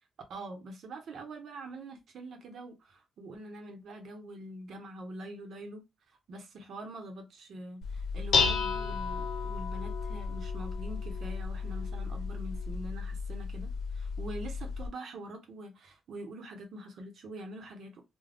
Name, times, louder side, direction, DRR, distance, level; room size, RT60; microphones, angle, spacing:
voice 1, 0.3-18.0, right 1 dB, 70° right, 0.8 m, -44 dB
Dishes pots and pans, 7.8-14.9, left 5 dB, 80° left, 0.6 m, -33 dB
2.4 x 2.2 x 3.4 m
cardioid pair, 80°, 0 cm